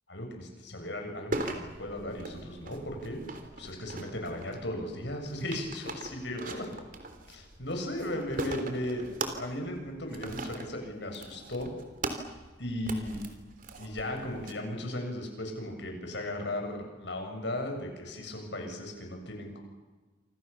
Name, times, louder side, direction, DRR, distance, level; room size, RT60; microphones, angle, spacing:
voice 1, 0.1-6.7 7.3-11.7 12.2-12.3 12.6-13.2 13.8-19.6, left 1 dB, 65° left, 3 dB, 7.5 m, -36 dB
sound 1, 1.3-14.5, right 2 dB, 45° right, 3.4 m, -41 dB
28.5 x 26.5 x 7.1 m, 1.3 s
head